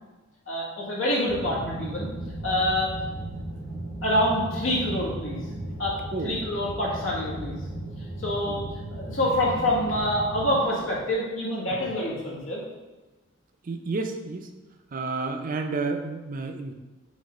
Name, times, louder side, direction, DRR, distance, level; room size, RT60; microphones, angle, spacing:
voice 1, 0.5-2.1 2.4-2.9 4.0-5.4 5.8-6.0 6.2-7.6 8.2-8.6 8.9-12.6, left 1 dB, 85° left, -4 dB, 1.8 m, -26 dB
sound 1, 1.3-10.6, right 1 dB, 40° left, 1.2 m, -36 dB
voice 2, 13.6-14.5 14.9-16.7, right 3 dB, 45° right, 5 dB, 0.5 m, -31 dB
5.2 x 3.7 x 4.9 m, 1.2 s
head